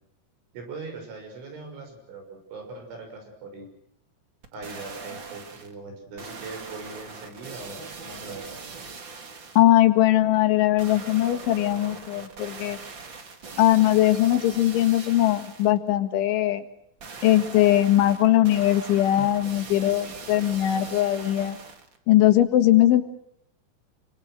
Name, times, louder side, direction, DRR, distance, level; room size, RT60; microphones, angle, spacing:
voice 1, 0.5-3.7 4.5-8.5, right 3 dB, 80° right, 5 dB, 8.8 m, -40 dB
sound 1, 4.4-5.7 6.2-9.8 10.8-15.8 17.0-22.0 22.4-22.5, right 4 dB, 40° right, 1.8 m, -41 dB
voice 2, 9.6-12.8 13.6-16.6 17.2-21.6 22.1-23.0, left 13 dB, 85° left, 6 dB, 4.2 m, -20 dB
28.0 x 25.5 x 6.5 m, 0.74 s
omnidirectional pair, 5.4 m